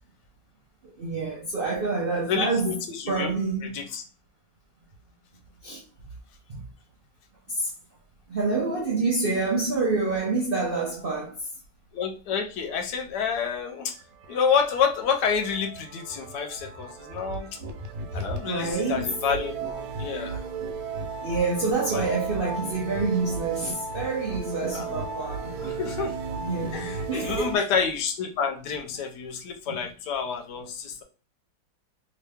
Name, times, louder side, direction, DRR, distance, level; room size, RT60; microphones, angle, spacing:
voice 1, 1.0-2.7 3.1-3.8 5.6-5.8 6.5-6.6 7.5-7.7 8.3-11.4 18.5-19.1 21.2-25.5 26.4-27.5 29.7-29.8, right 3 dB, 60° right, 0.5 m, -27 dB
voice 2, 2.2-3.3 3.6-4.0 11.9-13.9 14.3-17.6 18.1-20.4 21.9-22.0 24.7-25.0 25.6-26.1 26.7-31.0, left 6 dB, 75° left, 1.1 m, -28 dB
sound 1, 13.1-27.6, right 4 dB, 80° right, 1.3 m, -35 dB
2.9 x 2.9 x 3.4 m
omnidirectional pair, 1.9 m